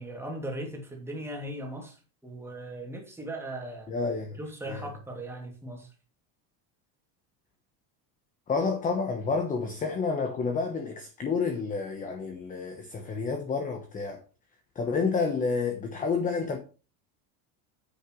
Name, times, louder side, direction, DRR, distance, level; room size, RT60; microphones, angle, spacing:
voice 1, 0.0-3.9 4.4-5.9, right 1 dB, 5° right, 2.5 m, -38 dB
voice 2, 3.9-4.4 4.7-4.8 8.5-14.2 14.7-16.6, left 4 dB, 15° left, 1.0 m, -29 dB
9.9 x 8.8 x 3.1 m
cardioid pair, 175°, 47 cm